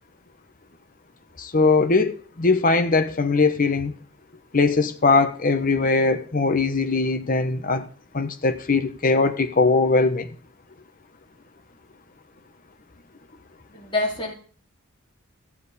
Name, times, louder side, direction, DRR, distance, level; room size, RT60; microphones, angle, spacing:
voice 1, 1.4-3.9 4.5-7.9 8.1-10.3, left 3 dB, 40° left, 1.0 m, -20 dB
voice 2, 13.7-14.3, left 2 dB, 25° left, 3.1 m, -26 dB
15.0 x 7.5 x 4.2 m
head